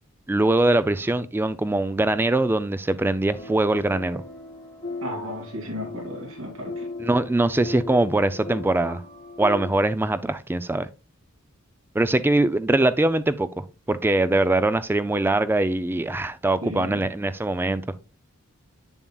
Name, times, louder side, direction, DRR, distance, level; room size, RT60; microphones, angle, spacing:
voice 1, 0.3-4.2 7.0-9.0 9.4-10.9 11.9-17.8, right 2 dB, 10° right, 0.3 m, -22 dB
sound 1, 3.3-9.7, left 3 dB, 35° left, 2.6 m, -37 dB
voice 2, 5.0-6.9 16.6-17.1, equal, 70° right, 2.7 m, -34 dB
8.2 x 7.2 x 2.3 m
head